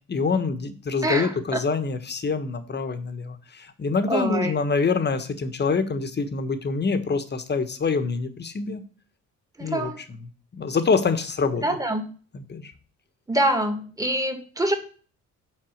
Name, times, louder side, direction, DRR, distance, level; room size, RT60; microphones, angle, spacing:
voice 1, 0.1-8.8 9.6-11.6 12.3-12.7, left 4 dB, 35° left, 10 dB, 1.4 m, -26 dB
voice 2, 1.0-1.6 4.1-4.5 9.6-10.0 11.6-12.0 13.3-14.7, right 1 dB, 10° right, 6 dB, 1.9 m, -25 dB
9.2 x 4.2 x 6.5 m, 0.39 s
cardioid pair, 90°, 30 cm